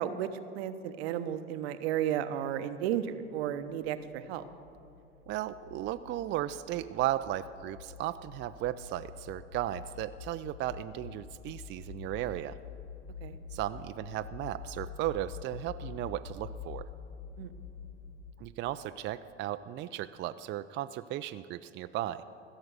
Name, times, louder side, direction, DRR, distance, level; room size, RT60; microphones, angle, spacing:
voice 1, 0.0-4.4 13.2-13.4 17.4-17.5, right 10 dB, 70° right, 11 dB, 0.9 m, -33 dB
sound 1, 3.6-18.9, left 6 dB, 55° left, 1.1 m, -47 dB
voice 2, 5.3-12.6 13.5-16.9 18.4-22.2, right 13 dB, 35° right, 11 dB, 0.4 m, -35 dB
15.0 x 6.6 x 8.0 m, 2.8 s
hypercardioid pair, 80°, 32 cm